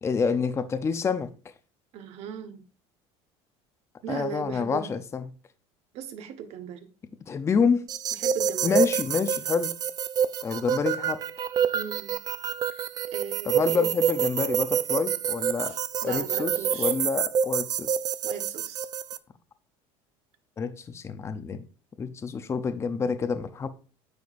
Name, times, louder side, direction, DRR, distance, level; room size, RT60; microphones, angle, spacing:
voice 1, 0.0-1.3 4.1-5.2 7.3-7.9 8.6-9.7 10.4-11.2 13.4-15.7 16.0-16.5 16.8-18.0 20.6-21.6 22.0-23.7, left 5 dB, 20° left, 0.6 m, -27 dB
voice 2, 1.9-2.6 4.0-5.0 5.9-6.9 8.1-8.9 11.7-12.2 12.7-12.8 13.1-13.9 15.7-16.9 18.2-18.9, right 8 dB, 50° right, 1.2 m, -38 dB
sound 1, 7.9-19.2, right 7 dB, 30° right, 0.4 m, -27 dB
9.5 x 6.5 x 2.5 m
cardioid pair, 140°, 13 cm